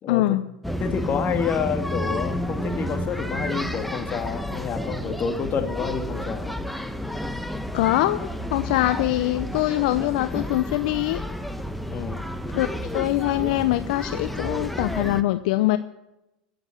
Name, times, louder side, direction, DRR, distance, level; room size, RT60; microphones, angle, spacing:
voice 1, 0.1-0.5 7.7-11.2 12.5-12.7 12.9-15.8, left 16 dB, 65° left, 12 dB, 0.6 m, -23 dB
sound 1, 0.6-15.2, equal, ahead, 1.1 m, -31 dB
voice 2, 0.8-6.6 11.8-12.2, left 7 dB, 40° left, 5 dB, 2.3 m, -29 dB
16.5 x 7.8 x 9.4 m, 0.94 s
hypercardioid pair, 95°, 5 cm